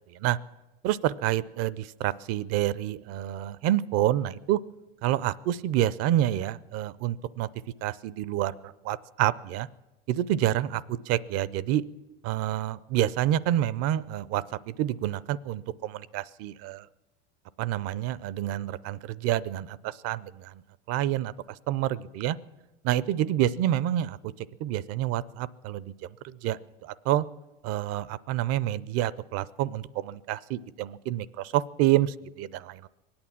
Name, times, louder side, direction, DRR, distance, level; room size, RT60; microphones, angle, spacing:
voice 1, 0.8-4.6 5.0-7.5 7.8-9.7 10.1-10.8 11.1-11.8 12.2-16.8 17.6-19.0 19.2-20.5 20.9-21.3 21.7-22.4 22.8-24.2 24.6-25.9 26.4-27.2 27.6-32.9, right 13 dB, 55° right, 20 dB, 0.6 m, -28 dB
22.5 x 8.7 x 7.3 m, 1.1 s
supercardioid pair, 100°, 30 cm